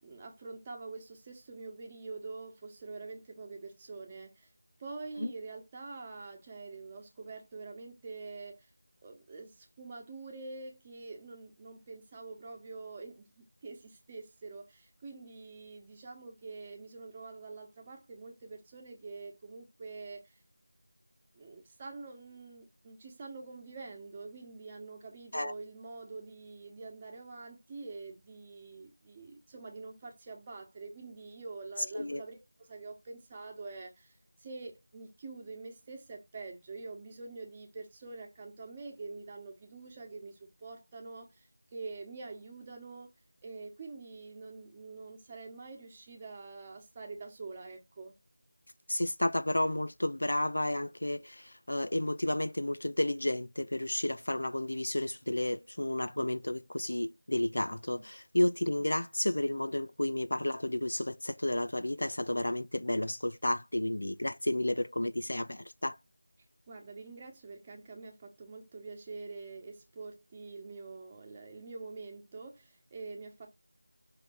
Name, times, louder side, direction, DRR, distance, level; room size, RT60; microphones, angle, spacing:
voice 1, 0.0-4.5 4.8-8.7 9.0-20.4 21.3-32.4 32.7-43.1 43.4-48.1 57.9-58.0 66.7-73.5, right 3 dB, 15° right, 1.2 m, -46 dB
voice 2, 48.9-66.0, left 1 dB, 70° left, 0.6 m, -32 dB
5.8 x 3.3 x 5.5 m
figure-of-eight pair, 175°, 0 cm